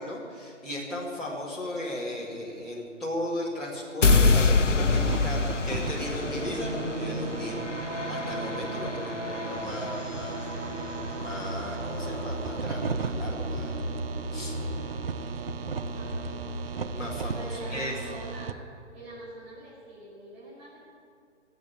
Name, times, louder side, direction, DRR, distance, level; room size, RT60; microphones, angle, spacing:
voice 1, 0.0-7.7 8.1-10.4 11.1-13.8 14.3-14.6 16.9-17.9, left 1 dB, ahead, -10 dB, 2.3 m, -36 dB
sound 1, 4.0-10.2, left 3 dB, 75° left, 0.9 m, -26 dB
sound 2, 4.9-18.5, right 6 dB, 50° right, 0.8 m, -38 dB
sound 3, 6.2-18.4, right 1 dB, 75° right, 2.9 m, -35 dB
voice 2, 8.7-9.6 15.3-16.5 17.3-18.6 18.9-20.8, right 1 dB, 35° right, -7 dB, 5.1 m, -45 dB
19.0 x 7.9 x 8.8 m, 2.5 s
figure-of-eight pair, 140°, 37 cm